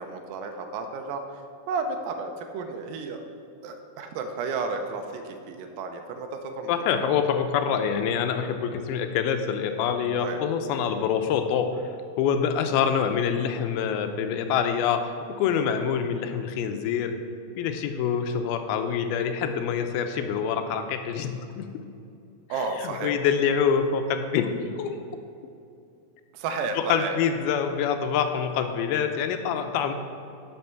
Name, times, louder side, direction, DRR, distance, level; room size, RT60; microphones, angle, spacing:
voice 1, 0.0-3.2 3.6-6.7 10.2-10.4 22.5-23.1 26.3-27.2, right 4 dB, 80° right, 5 dB, 2.4 m, -32 dB
voice 2, 6.7-11.9 12.2-17.1 17.6-21.9 22.6-25.0 26.8-29.9, left 7 dB, 90° left, 7 dB, 2.6 m, -26 dB
11.5 x 6.4 x 4.5 m, 2.6 s
omnidirectional pair, 4.3 m